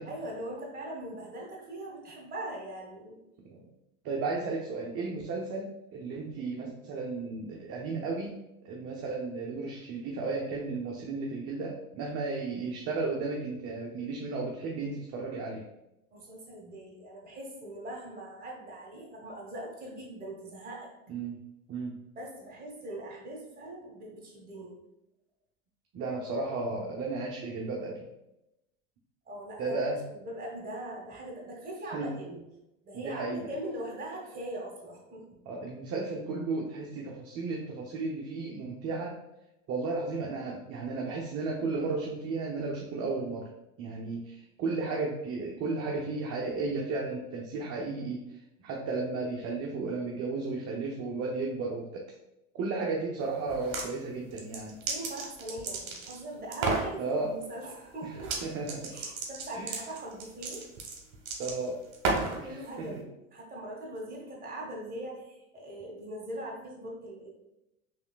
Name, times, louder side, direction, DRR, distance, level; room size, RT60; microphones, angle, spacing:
voice 1, 0.0-3.2 16.1-20.9 22.1-24.8 29.2-29.8 30.1-32.4 32.8-35.2 44.0-44.1 54.9-58.4 58.9-60.6 62.4-67.3, right 1 dB, 20° right, -1 dB, 1.4 m, -41 dB
voice 2, 4.0-8.4 8.6-15.6 21.1-21.4 21.7-22.0 25.9-28.1 29.6-30.0 31.9-32.2 32.9-33.5 35.5-39.2 39.7-43.5 43.8-48.2 48.6-52.0 52.5-54.8 57.0-57.3 58.0-58.1 58.4-58.9 59.5-59.8 61.4-61.8 62.4-63.0, right 3 dB, 35° right, -1 dB, 0.7 m, -34 dB
sound 1, 53.5-53.9 54.4-56.2 56.5-56.9 58.2-58.4 58.7-62.4, right 4 dB, 55° right, 1.1 m, -32 dB
4.9 x 3.1 x 2.4 m, 0.90 s
hypercardioid pair, 85°, 40 cm